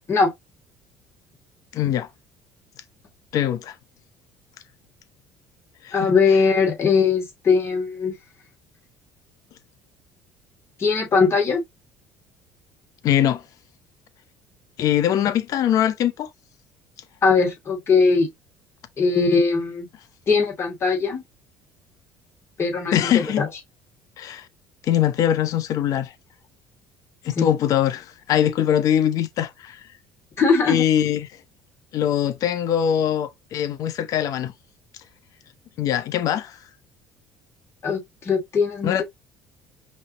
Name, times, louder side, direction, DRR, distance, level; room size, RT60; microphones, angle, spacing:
voice 1, 1.7-2.1 3.3-3.7 5.8-6.1 13.0-13.4 14.8-16.3 22.9-23.4 24.2-24.5 24.8-26.1 27.2-29.8 30.7-31.3 31.9-34.5 35.8-36.6 38.8-39.0, left 10 dB, 60° left, 0.7 m, -22 dB
voice 2, 5.9-8.2 10.8-11.6 17.2-18.3 19.0-19.9 20.3-21.2 22.6-23.5 27.4-27.5 30.4-30.8 37.8-39.0, left 4 dB, 40° left, 2.5 m, -20 dB
5.4 x 3.1 x 3.0 m
hypercardioid pair, 70°, 7 cm